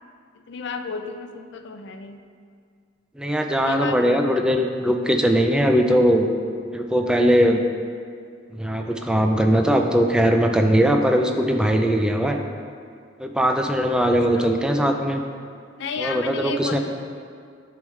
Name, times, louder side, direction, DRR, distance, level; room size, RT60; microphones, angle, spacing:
voice 1, 0.3-2.2 3.6-4.5 14.3-14.5 15.8-16.8, left 5 dB, 65° left, 6 dB, 0.4 m, -32 dB
voice 2, 3.2-6.3 6.6-7.6 8.5-12.4 13.2-15.2 16.0-16.8, equal, 5° right, 4 dB, 0.3 m, -20 dB
10.5 x 3.5 x 3.2 m, 2.2 s
head